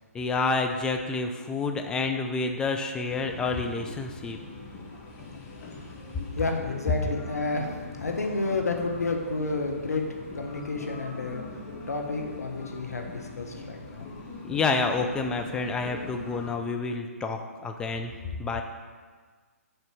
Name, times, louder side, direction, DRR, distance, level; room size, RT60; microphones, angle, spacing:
voice 1, 0.1-4.4 14.4-18.1 18.4-18.6, left 3 dB, 10° left, 4 dB, 0.5 m, -29 dB
sound 1, 3.1-16.6, left 2 dB, 25° left, 1.1 m, -42 dB
voice 2, 6.4-10.0 10.3-11.4 11.9-14.1, left 3 dB, 80° left, 3 dB, 1.2 m, -30 dB
6.8 x 4.4 x 5.9 m, 1.5 s
figure-of-eight pair, 135°, 8 cm